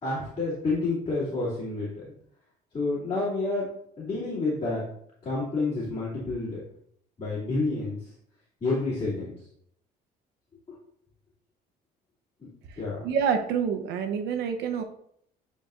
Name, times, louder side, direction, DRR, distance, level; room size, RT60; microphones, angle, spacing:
voice 1, 0.0-2.1 2.7-3.7 4.0-4.8 5.2-6.6 7.2-8.1 8.6-9.3 10.7-10.8 12.8-13.0, left 3 dB, 35° left, -10 dB, 2.6 m, -29 dB
voice 2, 13.0-14.8, right 7 dB, 85° right, 6 dB, 0.8 m, -27 dB
9.1 x 4.1 x 2.5 m, 0.69 s
cardioid pair, 110°, 17 cm